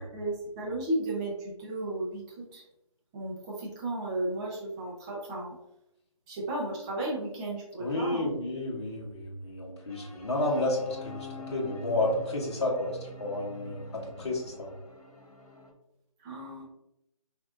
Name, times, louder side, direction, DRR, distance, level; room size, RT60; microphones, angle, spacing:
voice 1, 0.0-2.6 3.1-5.6 6.3-8.3 16.2-16.6, right 1 dB, 10° right, -4 dB, 0.6 m, -34 dB
voice 2, 7.8-14.7, left 2 dB, 50° left, -2 dB, 1.3 m, -31 dB
sound 1, 9.9-15.7, left 1 dB, 85° left, 1.2 m, -45 dB
5.8 x 2.6 x 2.5 m, 0.84 s
figure-of-eight pair, 155°, 18 cm